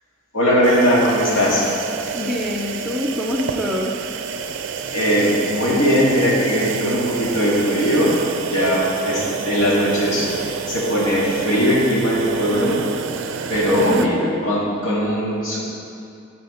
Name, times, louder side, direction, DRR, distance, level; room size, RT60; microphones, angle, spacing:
voice 1, 0.3-1.7 4.9-12.8 13.5-14.1 14.4-15.6, equal, 70° left, -6 dB, 2.1 m, -19 dB
sound 1, 0.6-14.1, right 5 dB, 60° right, 0.4 m, -29 dB
voice 2, 2.1-4.1 13.9-14.5, left 1 dB, ahead, -1 dB, 0.5 m, -25 dB
12.0 x 4.3 x 4.3 m, 2.5 s
head